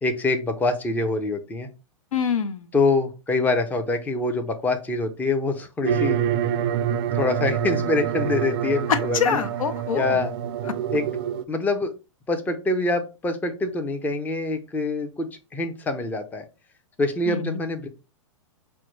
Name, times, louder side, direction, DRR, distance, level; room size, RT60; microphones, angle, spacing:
voice 1, 0.0-1.7 2.7-6.2 7.1-9.4 9.9-10.3 10.9-11.1 11.5-11.9 12.3-16.4 17.0-17.9, left 3 dB, 10° left, 0.5 m, -25 dB
voice 2, 2.1-2.7 8.9-10.2 17.3-17.6, left 7 dB, 85° left, 0.6 m, -25 dB
sound 1, 5.9-11.4, right 9 dB, 50° right, 0.4 m, -26 dB
5.7 x 2.1 x 3.1 m
hypercardioid pair, 125°, 17 cm